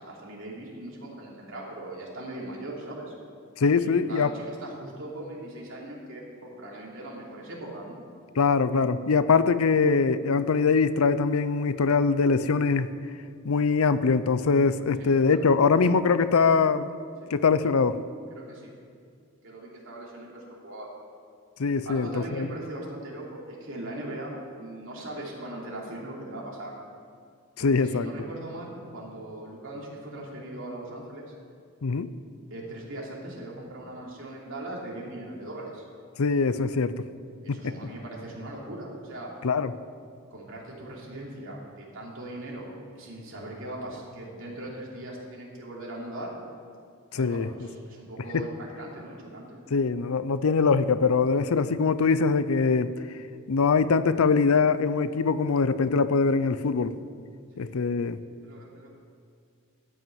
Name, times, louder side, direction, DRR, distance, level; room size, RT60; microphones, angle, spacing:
voice 1, 0.1-3.1 3.8-6.2 6.6-8.0 15.0-15.5 17.2-17.3 18.3-18.7 19.4-20.9 21.8-24.3 24.6-26.7 27.6-31.2 32.5-35.8 37.4-39.3 40.3-46.3 47.1-49.6 57.6-57.7 58.4-58.9, right 1 dB, 65° right, -4 dB, 3.2 m, -39 dB
voice 2, 3.6-4.3 8.4-12.9 13.4-16.9 17.3-18.0 21.6-22.5 27.6-28.1 31.8-32.1 36.2-37.0 37.5-37.8 39.4-39.7 47.1-47.5 48.3-48.4 49.7-52.9 53.5-56.9 57.6-58.2, left 4 dB, 85° left, 14 dB, 0.5 m, -23 dB
14.0 x 6.0 x 9.4 m, 2.2 s
head